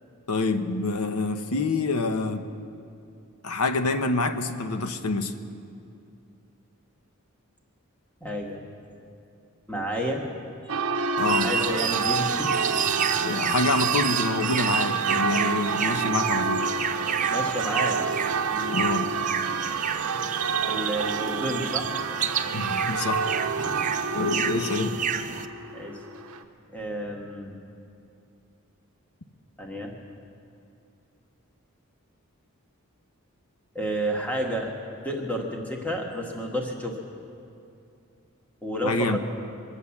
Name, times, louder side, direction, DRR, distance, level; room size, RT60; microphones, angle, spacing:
voice 1, 0.3-2.4 3.4-5.3 11.2-11.5 13.2-16.7 18.7-19.1 22.5-23.3 23.6-23.7 24.1-25.0 38.8-39.2, left 3 dB, 85° left, 8 dB, 1.0 m, -26 dB
voice 2, 8.2-8.6 9.7-10.3 11.4-12.8 13.1-13.2 17.3-18.0 18.5-18.9 20.7-21.9 23.6-24.3 25.7-26.0 26.7-27.6 29.6-29.9 33.7-34.7 35.0-37.0 38.6-39.2, equal, 5° left, 0 dB, 1.6 m, -31 dB
Church bell, 10.7-26.4, right 5 dB, 90° right, 0.9 m, -28 dB
sound 1, 11.2-25.4, right 8 dB, 35° right, 0.5 m, -30 dB
24.0 x 8.2 x 7.2 m, 2.5 s
head